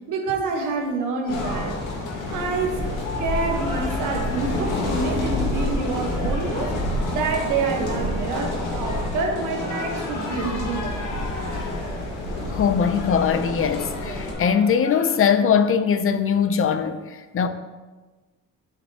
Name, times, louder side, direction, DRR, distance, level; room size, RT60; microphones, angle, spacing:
voice 1, 0.1-1.8 2.3-2.9 3.2-6.8 7.1-11.0, right 4 dB, 85° right, 2 dB, 1.2 m, -27 dB
sound 1, 1.2-15.4, left 2 dB, 65° left, 2.0 m, -38 dB
sound 2, 1.3-14.3, left 1 dB, 90° left, 1.8 m, -28 dB
voice 2, 12.5-17.5, left 7 dB, 45° left, 9 dB, 0.6 m, -21 dB
8.9 x 5.9 x 2.9 m, 1.3 s
cardioid pair, 90°, 30 cm